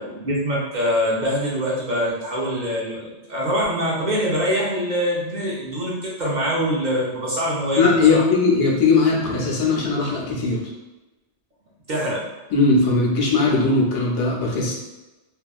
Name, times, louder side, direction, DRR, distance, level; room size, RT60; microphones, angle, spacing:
voice 1, 0.0-8.2 11.9-12.2, equal, 50° right, -5 dB, 0.6 m, -24 dB
voice 2, 7.8-10.6 12.5-14.7, left 3 dB, 90° left, -3 dB, 1.0 m, -19 dB
2.6 x 2.3 x 2.3 m, 1.1 s
omnidirectional pair, 1.1 m